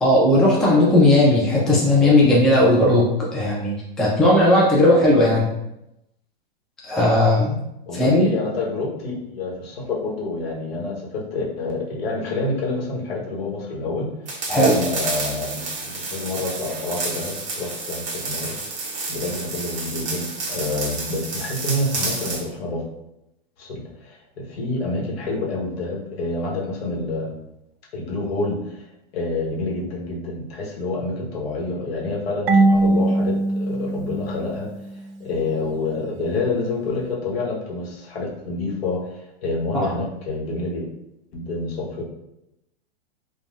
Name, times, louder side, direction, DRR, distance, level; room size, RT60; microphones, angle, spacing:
voice 1, 0.0-5.5 6.8-7.6 7.9-8.3 14.5-14.8 39.7-39.9, left 1 dB, ahead, -5 dB, 0.4 m, -17 dB
voice 2, 7.9-14.4 14.6-18.5 19.1-22.9 23.6-27.4 27.9-28.9 29.1-40.9 41.3-42.0, left 2 dB, 70° left, -2 dB, 1.1 m, -28 dB
sound 1, 14.3-22.5, right 3 dB, 25° right, 0.8 m, -30 dB
Marimba xylophone / Wood, 32.5-35.2, right 2 dB, 65° right, 0.5 m, -21 dB
3.7 x 2.3 x 2.4 m, 0.86 s
hypercardioid pair, 120°, 31 cm